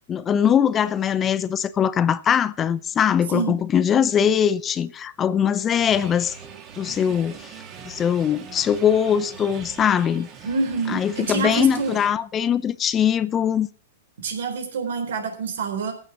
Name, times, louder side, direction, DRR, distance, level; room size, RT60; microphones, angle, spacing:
voice 1, 0.0-6.4 6.8-7.6 7.9-10.3 10.9-13.7, left 8 dB, 25° left, 0.7 m, -21 dB
sound 1, 5.7-12.1, right 7 dB, 35° right, 3.0 m, -41 dB
voice 2, 10.4-11.9 14.2-15.9, right 4 dB, 70° right, 3.9 m, -27 dB
14.5 x 6.7 x 5.9 m
hypercardioid pair, 110°, 0 cm